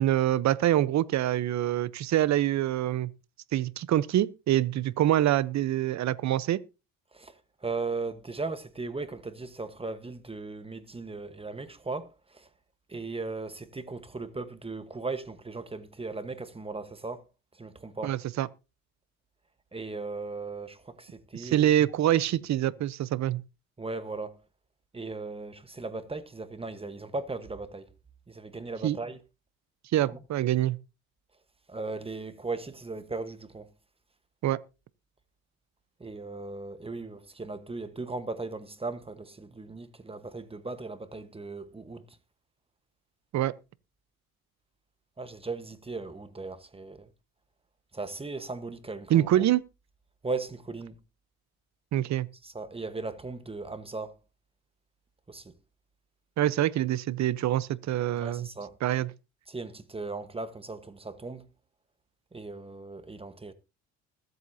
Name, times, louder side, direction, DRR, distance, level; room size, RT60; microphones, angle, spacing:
voice 1, 0.0-3.1 3.5-6.6 18.0-18.5 21.3-23.4 28.8-29.0 29.9-30.8 34.4-34.6 43.3-43.5 49.1-49.6 51.9-52.3 56.4-58.5 58.8-59.1, right 13 dB, 55° right, 0.8 m, -25 dB
voice 2, 7.1-12.5 12.9-17.2 17.6-18.2 19.7-21.7 23.8-24.4 24.9-27.9 28.3-29.2 30.1-30.2 31.7-33.7 36.0-42.0 45.2-47.1 47.9-49.4 50.2-50.9 52.4-54.1 55.3-55.5 58.2-58.7 59.5-61.4 62.3-63.5, right 3 dB, 15° right, 1.2 m, -37 dB
21.0 x 8.1 x 2.8 m
supercardioid pair, 85°, 33 cm